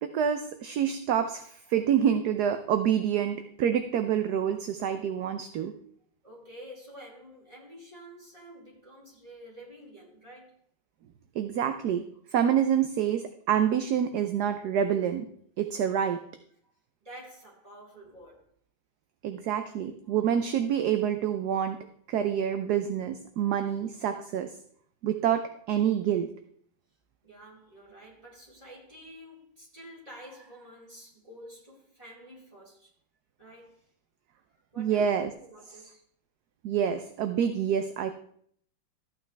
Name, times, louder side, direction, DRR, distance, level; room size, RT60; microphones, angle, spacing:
voice 1, 0.0-5.8 11.3-15.3 15.6-16.2 19.2-21.8 22.1-24.5 25.0-26.3 34.8-35.3 36.6-38.1, right 9 dB, 65° right, 1.1 m, -27 dB
voice 2, 5.2-5.7 6.2-10.6 16.6-16.7 17.0-18.4 27.2-32.9 33.4-33.9 34.7-36.0, equal, 20° right, 4.5 m, -49 dB
14.0 x 9.0 x 3.4 m
omnidirectional pair, 2.0 m